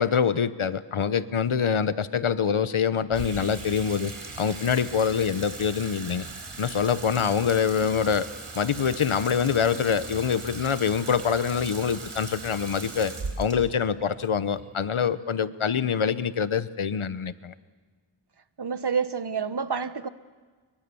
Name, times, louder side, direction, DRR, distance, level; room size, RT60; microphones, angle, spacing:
voice 1, 0.0-4.1 4.4-6.3 6.6-8.3 8.5-17.5, left 7 dB, 75° left, 1.1 m, -25 dB
Water tap faucet / Sink (filling or washing), 3.1-15.5, right 3 dB, 85° right, 4.3 m, -39 dB
voice 2, 18.6-20.1, right 6 dB, 50° right, 1.3 m, -28 dB
29.0 x 23.5 x 7.0 m
wide cardioid pair, 75°, 49 cm